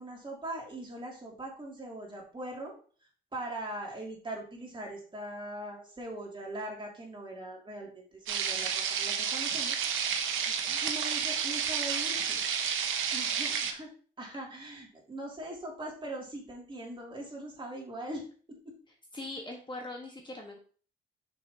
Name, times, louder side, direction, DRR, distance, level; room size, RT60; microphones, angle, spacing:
voice 1, 0.0-2.7 3.3-10.3 10.8-12.4 13.1-13.9 14.2-18.7, right 1 dB, 25° right, -2 dB, 2.9 m, -41 dB
sound 1, 8.3-13.7, right 7 dB, 80° right, 0.9 m, -31 dB
voice 2, 10.5-10.8 19.1-20.6, left 2 dB, 25° left, 1 dB, 1.4 m, -42 dB
6.4 x 5.9 x 2.9 m, 0.41 s
cardioid pair, 90°, 20 cm